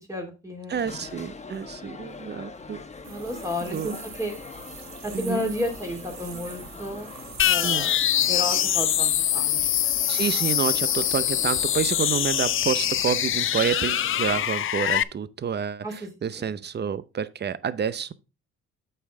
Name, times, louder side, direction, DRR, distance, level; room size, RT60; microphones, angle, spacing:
voice 1, 0.1-0.8 3.1-3.9 4.2-4.3 5.0-7.1 7.4-8.0 8.3-9.6 15.8-16.1 16.3-16.5, left 1 dB, 10° right, 2.7 m, -32 dB
sound 1, 0.7-14.5, left 4 dB, 25° left, 1.0 m, -42 dB
voice 2, 0.7-2.8 3.6-3.9 5.1-5.4 7.6-7.9 10.1-18.1, right 7 dB, 35° right, 0.7 m, -29 dB
sound 2, 3.0-13.0, right 7 dB, 60° right, 1.6 m, -44 dB
sound 3, 7.4-15.0, left 11 dB, 45° left, 0.4 m, -24 dB
8.2 x 5.6 x 3.7 m
cardioid pair, 90°, 30 cm